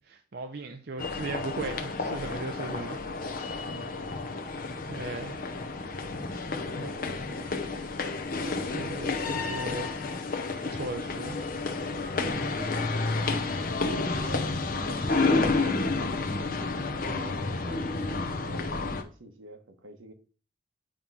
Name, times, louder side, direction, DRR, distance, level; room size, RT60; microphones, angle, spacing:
voice 1, 0.0-3.0 3.6-3.7 4.9-5.4 8.4-9.9 10.6-11.5, right 3 dB, 50° right, 0.5 m, -37 dB
sound 1, 1.0-19.0, left 3 dB, 45° left, 0.7 m, -30 dB
voice 2, 2.6-3.2 3.6-4.3 6.5-7.6 12.1-13.2 13.8-15.8 17.1-20.1, right 1 dB, 80° right, 1.2 m, -46 dB
8.7 x 3.0 x 5.4 m
head